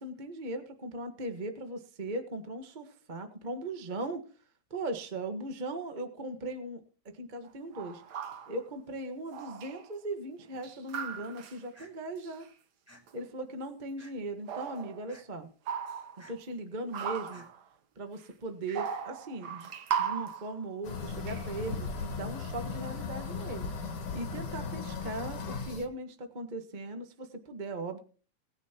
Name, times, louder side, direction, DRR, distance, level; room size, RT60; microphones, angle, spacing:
voice 1, 0.0-4.2 4.7-6.8 7.1-8.0 8.5-12.5 13.1-15.5 16.3-17.4 17.9-19.7 20.0-28.0, right 2 dB, 35° right, 6 dB, 0.7 m, -38 dB
sound 1, 7.4-7.5 7.7-8.6 9.3-9.9 10.4-11.6 12.2-12.5 13.1-13.3 14.5-15.2 15.7-16.4 16.9-17.6 18.2-18.3 18.7-20.6 21.3-21.7, right 8 dB, 80° right, 0.9 m, -37 dB
sound 2, 11.7-11.9 12.9-13.0 14.0-14.3 15.1-15.2 16.2-16.3 17.3-17.5, equal, 5° right, 3.3 m, -54 dB
sound 3, 20.8-25.9, left 5 dB, 50° left, 2.6 m, -37 dB
19.5 x 10.0 x 3.0 m, 0.38 s
omnidirectional pair, 3.4 m